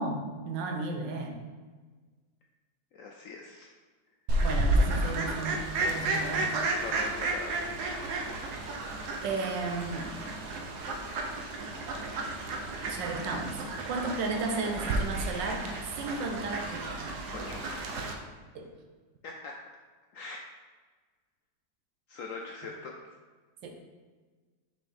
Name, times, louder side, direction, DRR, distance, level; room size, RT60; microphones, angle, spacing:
voice 1, 0.0-1.4 4.4-6.5 9.2-10.2 12.9-15.7 16.0-17.1 18.5-18.7 23.6-23.7, right 3 dB, 85° right, 3 dB, 1.5 m, -34 dB
voice 2, 2.9-3.7 5.8-6.0 6.8-7.8 17.3-18.1 19.2-19.6 20.1-20.4 22.1-22.9, left 3 dB, 75° left, 0 dB, 0.7 m, -43 dB
Fowl, 4.3-18.1, right 2 dB, 70° right, 1.2 m, -32 dB
6.2 x 4.4 x 3.5 m, 1.4 s
omnidirectional pair, 1.9 m